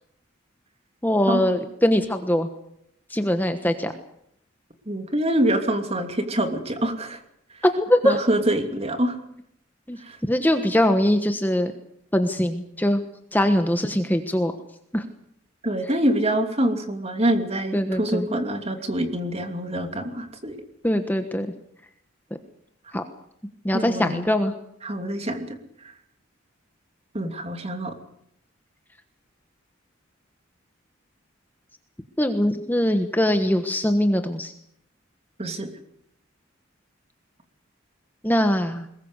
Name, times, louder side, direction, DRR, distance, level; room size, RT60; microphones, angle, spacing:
voice 1, 1.0-2.5 3.1-3.9 7.6-8.2 9.9-10.0 10.3-11.7 12.1-13.0 13.3-14.5 14.9-15.0 17.7-18.3 20.8-21.5 22.9-23.0 23.6-24.5 32.2-34.5 38.2-38.9, left 1 dB, 10° left, 7 dB, 1.3 m, -22 dB
voice 2, 4.9-7.2 8.0-9.2 10.0-10.2 15.6-20.6 23.7-24.3 24.8-25.6 27.1-27.9 35.4-35.7, right 1 dB, 30° right, 6 dB, 2.8 m, -25 dB
22.0 x 20.0 x 8.2 m, 0.73 s
head